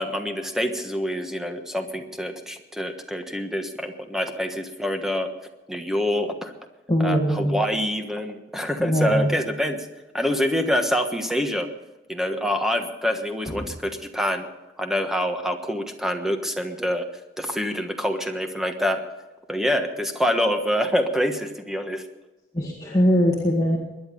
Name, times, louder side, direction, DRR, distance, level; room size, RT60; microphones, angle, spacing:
voice 1, 0.0-5.3 5.7-6.5 7.0-9.9 10.1-11.7 12.1-14.5 14.8-17.1 17.4-19.0 19.5-22.0, equal, 5° right, 5 dB, 1.3 m, -26 dB
voice 2, 6.9-7.5 8.8-9.3 13.6-13.7 22.5-23.8, equal, 20° left, -3 dB, 2.0 m, -21 dB
22.0 x 10.5 x 5.5 m, 1.0 s
head